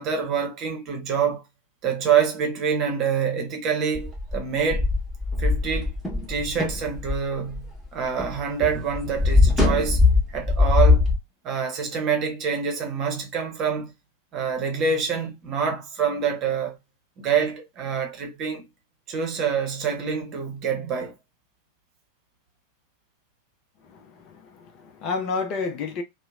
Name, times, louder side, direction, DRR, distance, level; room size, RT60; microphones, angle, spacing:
voice 1, 0.0-1.4 1.8-4.8 5.4-5.9 6.3-10.0 10.3-11.0 11.4-13.9 14.3-16.8 17.2-18.7 19.1-21.1, right 6 dB, 35° right, 0.8 m, -26 dB
sound 1, 3.9-8.4 8.6-11.2, left 3 dB, ahead, 1.2 m, -21 dB
voice 2, 23.9-26.0, left 4 dB, 40° left, 0.6 m, -30 dB
2.8 x 2.1 x 2.3 m
figure-of-eight pair, 90°, 0 cm